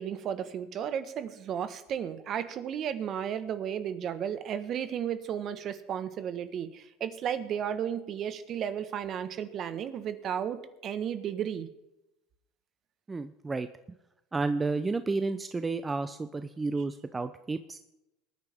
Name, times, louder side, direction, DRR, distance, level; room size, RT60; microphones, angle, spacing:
voice 1, 0.0-11.7, right 9 dB, 45° right, 11 dB, 1.3 m, -34 dB
voice 2, 13.1-13.7 14.3-17.8, right 3 dB, 20° right, 11 dB, 0.6 m, -31 dB
22.5 x 9.6 x 3.6 m, 0.91 s
supercardioid pair, 100°, 0 cm